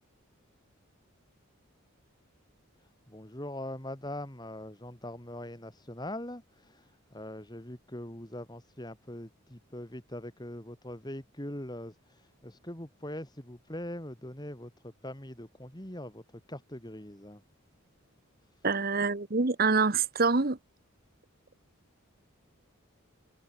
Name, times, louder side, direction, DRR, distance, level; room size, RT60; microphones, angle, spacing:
voice 1, 3.1-17.4, left 1 dB, 20° left, 3.0 m, -42 dB
voice 2, 18.6-20.6, right 4 dB, 45° right, 1.1 m, -26 dB
head